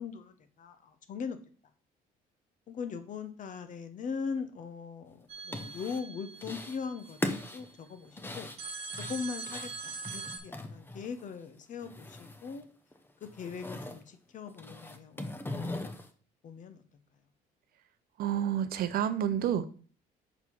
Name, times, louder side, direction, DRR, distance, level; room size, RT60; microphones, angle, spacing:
voice 1, 0.0-1.4 2.7-8.5 9.1-12.7 13.2-15.8 16.4-16.8, left 5 dB, 50° left, 9 dB, 0.9 m, -40 dB
sound 1, 5.2-6.0 6.4-6.8 7.1-11.3 11.6-12.6 12.9-14.0 14.5-16.1, left 2 dB, 15° left, 0.7 m, -40 dB
sound 2, 5.3-7.5 8.6-10.4, right 4 dB, 40° right, 1.5 m, -42 dB
voice 2, 18.2-19.7, right 9 dB, 60° right, 13 dB, 0.6 m, -29 dB
5.9 x 4.0 x 4.6 m, 0.41 s
cardioid pair, 110°, 17 cm